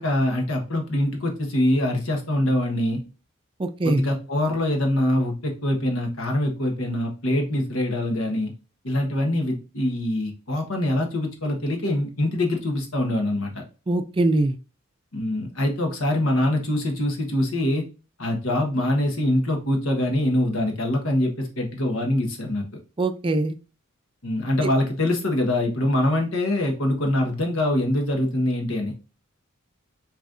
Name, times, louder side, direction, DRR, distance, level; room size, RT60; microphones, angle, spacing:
voice 1, 0.0-3.0 3.8-8.5 8.8-13.6 15.1-17.9 18.2-22.6 24.2-28.9, left 1 dB, 80° left, 2 dB, 1.3 m, -24 dB
voice 2, 3.6-4.0 13.9-14.6 23.0-23.6, right 2 dB, 25° right, 8 dB, 0.4 m, -22 dB
6.3 x 3.1 x 2.5 m, 0.33 s
head